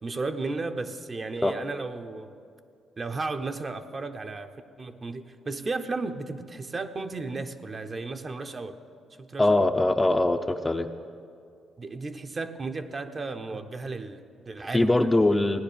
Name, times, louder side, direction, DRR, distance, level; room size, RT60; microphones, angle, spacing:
voice 1, 0.0-2.3 3.0-4.5 4.8-8.8 9.2-9.7 11.8-15.1, right 3 dB, 35° right, 7 dB, 0.8 m, -34 dB
voice 2, 9.4-10.9 14.7-15.6, left 2 dB, 15° left, 7 dB, 0.6 m, -22 dB
16.0 x 9.8 x 6.9 m, 2.3 s
cardioid pair, 90°, 0 cm